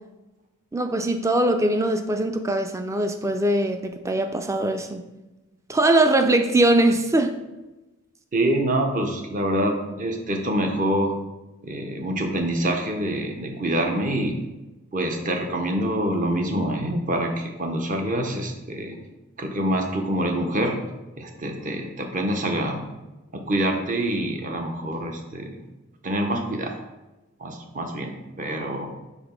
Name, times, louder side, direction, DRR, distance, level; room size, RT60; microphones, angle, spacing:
voice 1, 0.7-5.0 5.7-7.4, right 1 dB, 15° right, 6 dB, 0.4 m, -21 dB
voice 2, 8.3-11.1 11.6-14.4 14.9-19.0 19.4-20.8 21.2-22.8 23.3-25.6 26.0-26.8 27.4-28.9, right 1 dB, 35° right, 3 dB, 0.7 m, -26 dB
5.0 x 3.7 x 5.1 m, 1.1 s
head